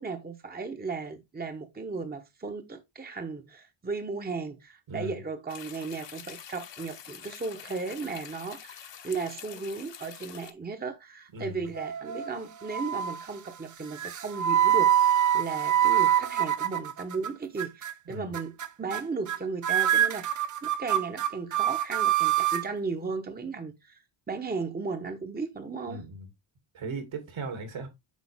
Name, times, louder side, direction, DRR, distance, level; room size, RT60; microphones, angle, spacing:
voice 1, 0.0-26.0, right 4 dB, 20° right, 1.0 m, -36 dB
voice 2, 4.9-5.2 11.3-11.6 18.1-18.4 25.9-26.3 26.7-27.9, right 3 dB, 70° right, 2.8 m, -37 dB
sound 1, 5.5-10.5, left 9 dB, 60° left, 1.2 m, -46 dB
sound 2, 11.8-12.4 12.7-13.2 14.0-17.3 17.6-17.9 18.3-18.7 18.9-19.0 19.3-19.4 19.6-22.6, right 11 dB, 40° right, 0.6 m, -25 dB
8.4 x 5.6 x 3.5 m
wide cardioid pair, 130°, 50 cm